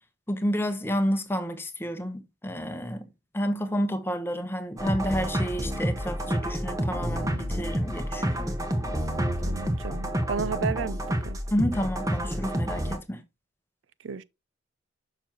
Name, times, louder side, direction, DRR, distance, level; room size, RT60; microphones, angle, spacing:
voice 1, 0.3-3.1 3.3-8.6 11.5-13.2, equal, 10° left, 0.9 m, -30 dB
sound 1, 4.8-13.0, equal, 15° right, 0.9 m, -29 dB
voice 2, 9.4-11.4 14.0-14.2, right 5 dB, 80° right, 0.4 m, -33 dB
6.9 x 5.9 x 2.8 m
head